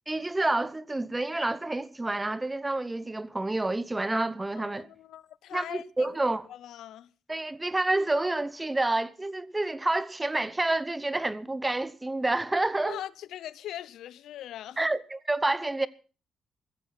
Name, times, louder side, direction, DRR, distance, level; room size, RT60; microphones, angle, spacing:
voice 1, 0.1-4.9 5.5-6.5 7.3-13.0 14.8-15.9, right 2 dB, 15° right, 0.9 m, -28 dB
voice 2, 4.5-7.1 12.8-14.9, left 12 dB, 85° left, 0.7 m, -41 dB
15.5 x 14.5 x 5.8 m
cardioid pair, 135°, 0 cm